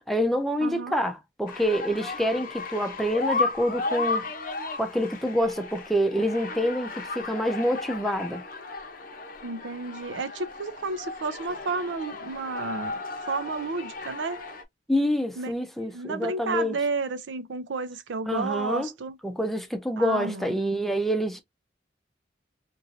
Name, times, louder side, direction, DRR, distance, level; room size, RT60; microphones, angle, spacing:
voice 1, 0.1-4.3 4.8-8.4 14.9-16.8 18.2-18.9 19.2-21.4, equal, ahead, 0.5 m, -27 dB
voice 2, 0.6-1.0 9.4-13.0 13.3-14.4 15.4-15.5 15.9-19.2 20.0-20.6, right 4 dB, 85° right, 0.5 m, -31 dB
sound 1, 1.5-14.6, left 3 dB, 50° left, 0.7 m, -34 dB
3.0 x 2.6 x 2.6 m
head